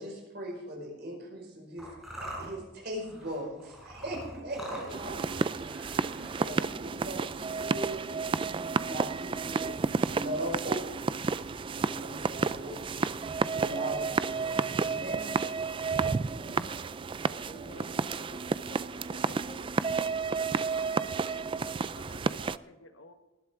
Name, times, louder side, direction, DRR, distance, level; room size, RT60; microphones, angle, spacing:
voice 1, 0.0-1.9 2.2-9.7 10.0-11.3 11.7-15.4 16.3-16.7, right 1 dB, 55° right, 1 dB, 5.1 m, -40 dB
sound 1, 1.8-7.8, right 1 dB, ahead, 4.5 m, -45 dB
sound 2, 4.9-22.6, right 4 dB, 25° right, 0.3 m, -31 dB
voice 2, 17.4-19.6, right 1 dB, 40° left, 1 dB, 4.6 m, -49 dB
voice 3, 19.2-20.2 21.0-21.6 21.9-23.1, left 3 dB, 90° left, 7 dB, 1.4 m, -53 dB
19.5 x 11.5 x 3.6 m, 1.1 s
head